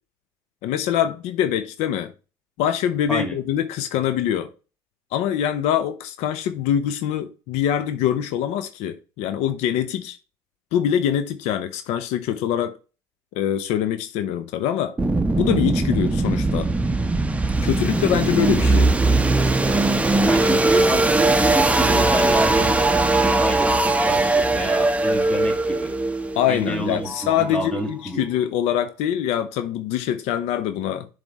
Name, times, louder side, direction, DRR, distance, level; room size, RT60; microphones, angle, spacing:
voice 1, 0.6-2.1 2.6-4.5 5.1-10.2 10.7-12.8 13.3-15.0 15.4-16.7 17.6-18.9 26.3-31.1, left 10 dB, 75° left, 0.7 m, -24 dB
sound 1, 15.0-27.8, right 2 dB, 10° right, 0.8 m, -20 dB
voice 2, 20.1-26.0 26.5-28.3, right 1 dB, 10° left, 1.9 m, -28 dB
7.1 x 3.5 x 4.0 m
supercardioid pair, 85°, 11 cm